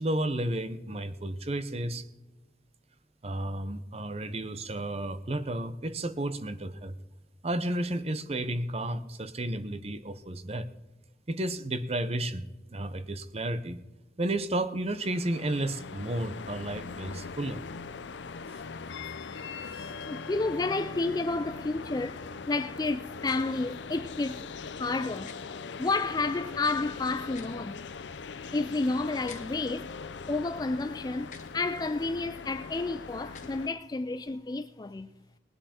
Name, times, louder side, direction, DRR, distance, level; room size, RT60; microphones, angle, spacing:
voice 1, 0.0-2.1 3.2-7.0 7.4-10.7 11.3-13.8 14.2-17.6, right 1 dB, 35° right, 0.8 m, -32 dB
sound 1, 14.9-33.7, left 5 dB, 75° left, 0.6 m, -41 dB
voice 2, 20.1-24.5 24.8-25.3 25.8-27.9 28.5-29.9 30.3-35.1, left 3 dB, 20° left, 0.3 m, -31 dB
sound 2, 23.2-23.4 25.2-25.4 27.2-27.6 29.2-29.4 31.2-31.5 33.3-33.5, left 6 dB, 40° left, 1.3 m, -48 dB
20.0 x 9.6 x 4.4 m
head